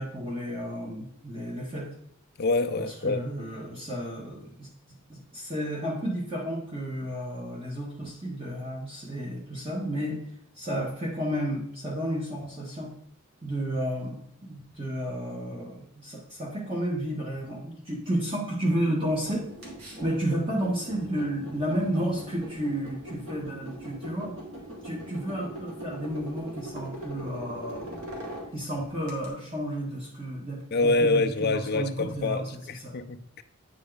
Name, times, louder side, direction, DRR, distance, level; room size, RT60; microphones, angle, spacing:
voice 1, 0.0-1.9 2.7-10.2 10.5-12.9 13.4-19.5 20.0-24.4 24.8-28.0 28.5-32.9, equal, 25° right, 1.4 m, -32 dB
voice 2, 2.4-3.2 20.3-20.4 30.7-33.4, left 3 dB, 50° left, 0.5 m, -26 dB
sound 1, 19.0-29.3, right 1 dB, 85° right, 2.3 m, -41 dB
9.0 x 4.2 x 3.9 m
head